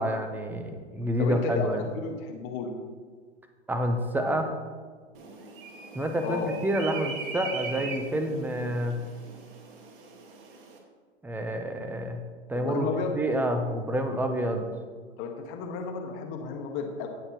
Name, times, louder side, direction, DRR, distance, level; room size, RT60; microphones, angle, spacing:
voice 1, 0.0-1.8 3.7-4.5 5.9-9.0 11.2-12.2 12.5-12.9 13.1-14.7, equal, 5° right, 5 dB, 0.8 m, -28 dB
voice 2, 1.2-1.7 1.9-2.7 6.2-6.5 12.5-13.1 15.2-17.1, left 5 dB, 35° left, 3 dB, 1.7 m, -32 dB
sound 1, 5.1-10.8, right 3 dB, 50° right, 2.0 m, -40 dB
18.0 x 6.6 x 3.1 m, 1.5 s
hypercardioid pair, 115°, 35 cm